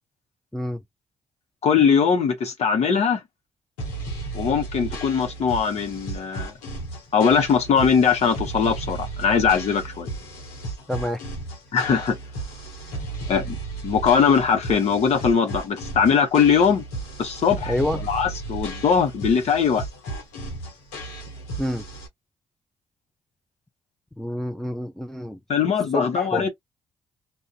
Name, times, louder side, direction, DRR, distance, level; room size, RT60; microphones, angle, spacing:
voice 1, 1.6-3.2 4.3-6.5 7.1-10.1 11.7-12.2 13.3-13.6 13.8-16.8 17.2-19.8 25.5-26.5, left 6 dB, 55° left, 1.0 m, -21 dB
sound 1, 3.8-22.1, right 3 dB, 85° left, 1.0 m, -34 dB
voice 2, 10.9-11.2 12.9-13.0 17.7-18.0 21.6-21.8 24.2-25.4 25.9-26.5, left 1 dB, 5° left, 0.5 m, -28 dB
2.5 x 2.3 x 2.4 m
hypercardioid pair, 45°, 13 cm